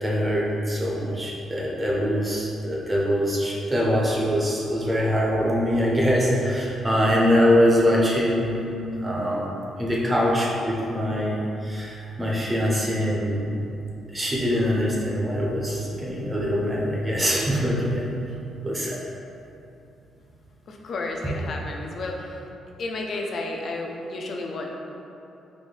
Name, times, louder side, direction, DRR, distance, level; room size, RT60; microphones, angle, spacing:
voice 1, 0.0-8.6 9.0-9.5 9.8-13.5 14.1-18.1 18.6-19.0, equal, 15° right, -4 dB, 0.6 m, -23 dB
voice 2, 20.7-22.4 22.8-24.7, left 2 dB, 55° left, 1 dB, 0.4 m, -32 dB
4.1 x 2.6 x 3.3 m, 2.8 s
cardioid pair, 125°, 0 cm